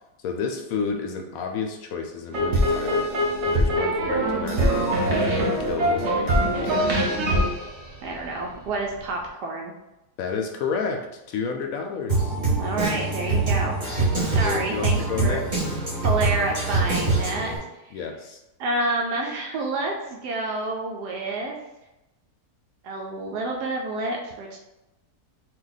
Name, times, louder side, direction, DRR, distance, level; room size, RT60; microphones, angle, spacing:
voice 1, 0.2-3.0 3.4-6.9 10.2-12.4 14.2-15.6 17.9-18.4, left 5 dB, 70° left, 3 dB, 0.9 m, -31 dB
sound 1, 2.3-8.7, equal, 50° right, 1.0 m, -23 dB
voice 2, 8.0-9.7 12.6-13.8 14.3-15.4 16.0-17.5 17.8-17.9 18.6-21.5 22.8-24.6, right 2 dB, 85° right, 0 dB, 1.2 m, -28 dB
Drum kit, 12.1-17.6, right 3 dB, 30° right, 1.3 m, -24 dB
3.7 x 2.7 x 3.9 m, 0.95 s
omnidirectional pair, 1.7 m